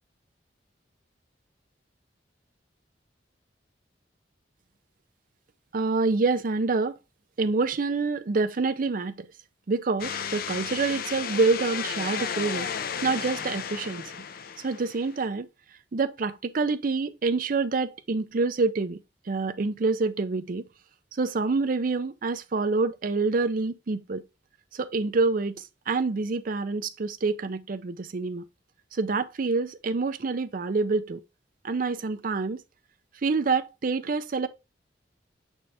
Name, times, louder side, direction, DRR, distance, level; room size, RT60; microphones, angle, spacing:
voice 1, 5.7-7.0 7.4-9.3 9.7-12.7 13.0-14.0 14.6-15.5 15.9-19.0 19.3-20.6 21.2-24.2 24.7-28.4 28.9-31.2 31.6-32.6 33.2-34.5, right 3 dB, 50° right, 0.5 m, -27 dB
sound 1, 10.0-15.2, left 7 dB, 55° left, 0.5 m, -33 dB
6.4 x 4.4 x 3.3 m
head